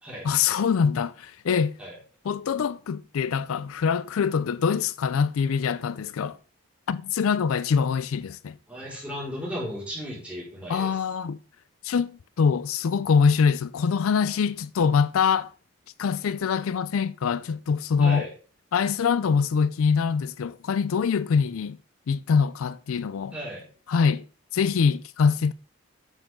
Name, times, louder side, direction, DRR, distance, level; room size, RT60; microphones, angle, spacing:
voice 1, 0.2-1.8 2.2-6.4 6.9-8.6 10.7-11.4 11.8-15.5 16.0-18.3 18.7-21.8 22.1-23.3 23.9-24.2 24.5-25.5, left 6 dB, 80° left, 0.4 m, -24 dB
voice 2, 8.7-11.0 18.0-18.3 23.3-23.7, equal, 5° right, 4.8 m, -35 dB
9.3 x 7.4 x 3.7 m
head